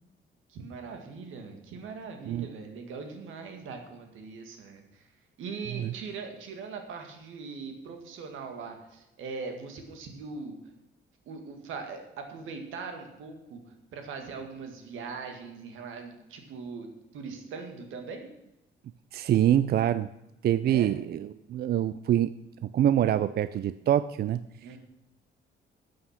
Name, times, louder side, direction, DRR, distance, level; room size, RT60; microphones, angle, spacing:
voice 1, 0.5-5.1 5.4-10.6 11.3-13.6 13.9-18.3 20.6-20.9 24.6-24.8, right 4 dB, 85° right, 5 dB, 2.0 m, -41 dB
voice 2, 19.1-20.1 20.4-22.3 22.6-24.4, right 11 dB, 55° right, 15 dB, 0.4 m, -25 dB
12.5 x 7.7 x 5.8 m, 0.90 s
cardioid pair, 90°, 20 cm